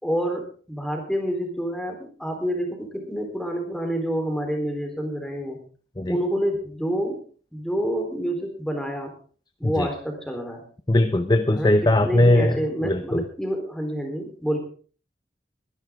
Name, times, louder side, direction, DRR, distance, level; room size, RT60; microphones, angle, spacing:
voice 1, 0.0-5.6 6.1-7.2 7.5-9.1 9.6-10.6 11.5-11.7 12.0-14.6, equal, 5° left, 3 dB, 3.7 m, -28 dB
voice 2, 10.9-12.6 12.8-13.2, left 1 dB, 25° left, 9 dB, 0.7 m, -19 dB
22.5 x 11.0 x 3.6 m, 0.40 s
head